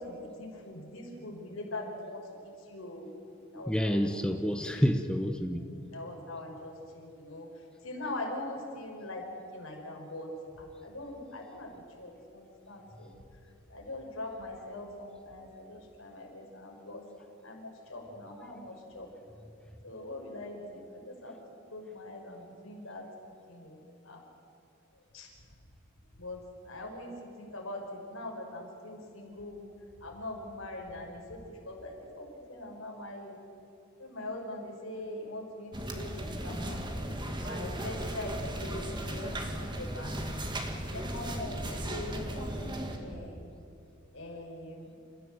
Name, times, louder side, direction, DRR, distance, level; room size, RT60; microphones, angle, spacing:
voice 1, 0.0-3.1 3.5-4.3 5.9-9.2 9.5-10.3 10.6-13.2 13.7-17.0 17.4-19.1 19.8-21.3 21.7-23.0 23.5-24.2 25.1-25.3 26.2-26.4 26.6-29.6 30.0-33.4 34.0-36.8 37.4-40.1 40.7-43.4 44.1-45.0, left 1 dB, 75° left, 0 dB, 5.4 m, -42 dB
voice 2, 3.5-5.7, equal, 5° left, 5 dB, 0.9 m, -28 dB
sound 1, 35.7-43.0, right 1 dB, 20° right, 2.1 m, -36 dB
28.5 x 15.0 x 7.9 m, 2.7 s
head